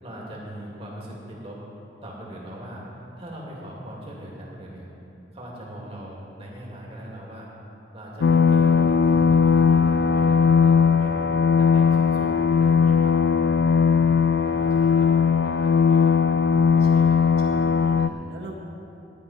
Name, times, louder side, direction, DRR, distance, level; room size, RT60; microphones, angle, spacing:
voice 1, 0.0-1.6 2.0-2.8 3.2-4.9 5.3-7.5 7.9-11.2 11.6-13.1 13.4-14.0 14.4-16.1 16.7-17.2 18.0-18.4, right 1 dB, 35° right, -4 dB, 2.6 m, -40 dB
sound 1, 8.2-18.1, left 6 dB, 70° left, 0.3 m, -19 dB
voice 2, 16.8-17.3 17.5-18.6, right 1 dB, 65° right, -2 dB, 2.1 m, -43 dB
15.5 x 10.5 x 4.4 m, 2.7 s
head